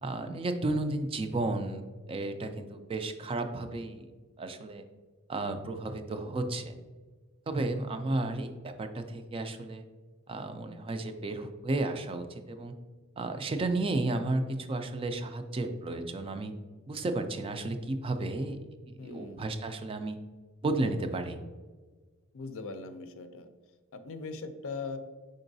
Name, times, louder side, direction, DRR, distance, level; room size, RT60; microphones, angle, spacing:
voice 1, 0.0-1.8 2.1-4.1 4.4-4.8 5.3-6.7 7.5-9.8 10.3-12.7 13.2-16.5 16.9-18.6 19.0-20.2 20.6-21.4, right 2 dB, 25° right, 7 dB, 0.3 m, -33 dB
voice 2, 19.0-19.4 22.3-23.5 23.9-25.0, left 4 dB, 65° left, 8 dB, 0.5 m, -40 dB
5.2 x 3.8 x 2.6 m, 1.4 s
head